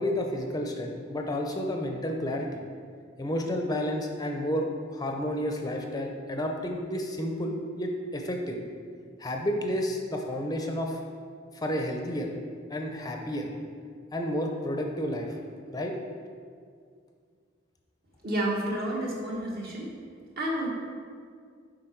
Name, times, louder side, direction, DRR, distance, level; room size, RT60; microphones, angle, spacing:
voice 1, 0.0-2.6 3.2-8.6 9.2-11.0 11.5-12.3 12.7-13.5 14.1-15.4 15.7-15.9, equal, 20° left, 2 dB, 0.5 m, -31 dB
voice 2, 18.2-19.9 20.4-20.7, right 1 dB, 55° right, -3 dB, 1.6 m, -30 dB
7.7 x 5.1 x 4.5 m, 2.1 s
head